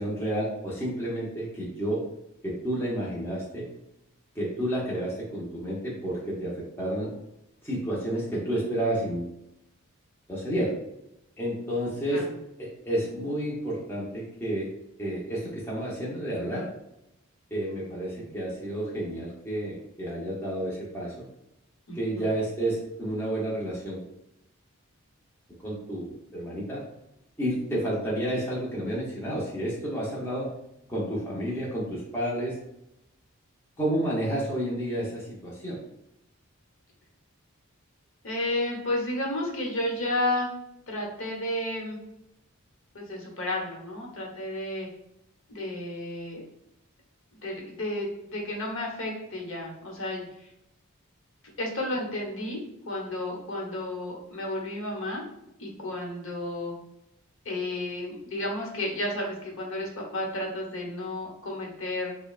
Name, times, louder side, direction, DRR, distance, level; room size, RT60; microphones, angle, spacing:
voice 1, 0.0-2.0 2.4-3.7 4.3-7.1 7.6-9.3 10.3-10.8 11.4-12.3 12.6-14.7 15.0-16.7 17.5-21.3 21.9-24.0 25.6-26.8 27.4-30.5 30.9-32.6 33.8-35.8, right 1 dB, 10° left, -7 dB, 0.8 m, -30 dB
voice 2, 21.9-22.3 38.2-40.5 40.9-42.0 42.9-44.9 45.5-46.4 47.4-50.2 51.6-52.6 52.8-55.2 55.6-56.7 57.4-62.1, left 1 dB, 60° left, -1 dB, 1.0 m, -32 dB
5.2 x 2.2 x 2.4 m, 0.83 s
head